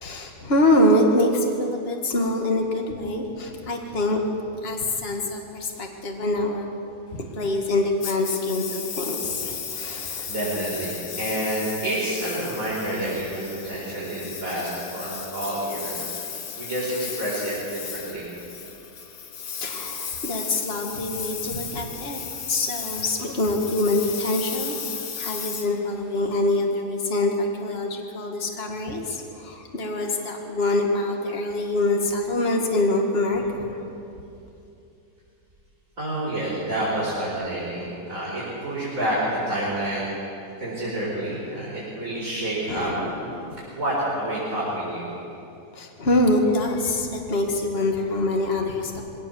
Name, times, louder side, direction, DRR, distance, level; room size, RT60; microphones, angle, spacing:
voice 1, 0.0-4.2 4.6-6.7 7.1-10.3 19.6-22.2 22.5-33.9 42.7-43.6 45.7-49.0, left 1 dB, 40° left, 2 dB, 2.1 m, -25 dB
Engine, 8.0-26.5, left 6 dB, 65° left, 1.7 m, -35 dB
voice 2, 10.2-16.0 16.6-18.2 36.0-40.1 40.6-42.9 43.7-45.1, right 1 dB, 55° right, -8 dB, 5.3 m, -28 dB
22.0 x 17.0 x 7.1 m, 2.8 s
omnidirectional pair, 1.7 m